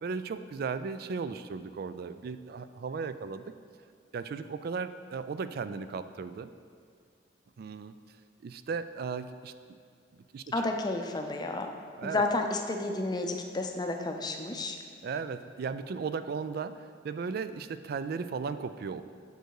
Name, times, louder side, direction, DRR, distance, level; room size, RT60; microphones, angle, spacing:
voice 1, 0.0-3.4 4.1-6.5 7.6-7.9 8.4-9.5 10.1-10.4 12.0-12.2 15.0-19.0, right 5 dB, 55° right, 12 dB, 0.3 m, -36 dB
voice 2, 10.5-11.7 12.0-14.8, left 2 dB, 20° left, 4 dB, 0.5 m, -31 dB
6.8 x 6.5 x 4.7 m, 2.3 s
head